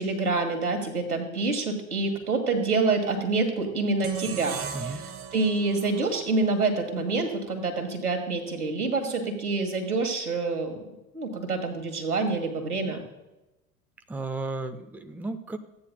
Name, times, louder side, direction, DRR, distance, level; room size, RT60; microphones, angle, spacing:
voice 1, 0.0-5.0 5.3-10.8 11.1-13.0, right 3 dB, 85° right, 3 dB, 1.8 m, -27 dB
sound 1, 4.0-7.2, right 8 dB, 30° right, 1.0 m, -38 dB
voice 2, 4.7-5.0 14.1-15.6, right 2 dB, 5° right, 8 dB, 0.6 m, -34 dB
15.5 x 9.6 x 2.2 m, 0.98 s
figure-of-eight pair, 70°, 43 cm